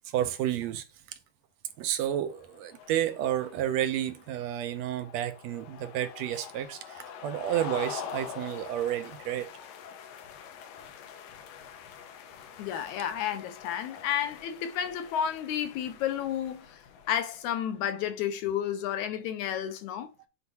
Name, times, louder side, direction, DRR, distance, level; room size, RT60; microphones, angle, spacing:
voice 1, 0.1-0.8 1.8-9.5, right 11 dB, 80° right, 1.6 m, -31 dB
sound 1, 2.1-17.8, left 8 dB, 90° left, 2.6 m, -45 dB
voice 2, 12.6-16.7 17.1-20.1, left 9 dB, 75° left, 2.1 m, -31 dB
9.9 x 4.5 x 2.8 m
omnidirectional pair, 3.7 m